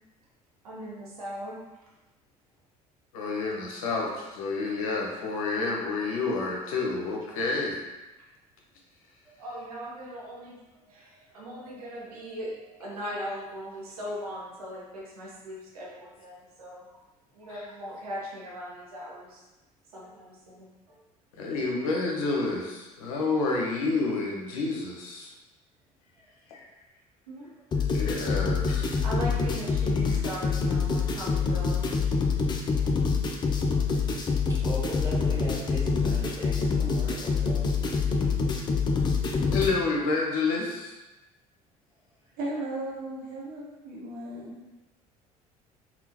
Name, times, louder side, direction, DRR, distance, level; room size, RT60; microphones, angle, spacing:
voice 1, 0.6-1.6 8.2-8.3 9.4-16.9 17.3-19.4 19.9-21.0 27.3-27.5 29.0-31.9, equal, 75° right, -4 dB, 0.7 m, -39 dB
voice 2, 3.1-7.8 17.5-17.6 21.4-25.3 26.5-26.7 27.9-29.0 39.5-40.9, left 3 dB, 70° left, -1 dB, 0.6 m, -29 dB
sound 1, 27.7-39.7, left 4 dB, 25° left, 0.4 m, -26 dB
voice 3, 33.8-34.2 34.5-37.7, equal, 15° right, -6 dB, 1.2 m, -39 dB
voice 4, 42.4-44.5, right 2 dB, 50° right, -3 dB, 0.9 m, -35 dB
3.6 x 2.3 x 2.8 m, 1.1 s
figure-of-eight pair, 60°, 19 cm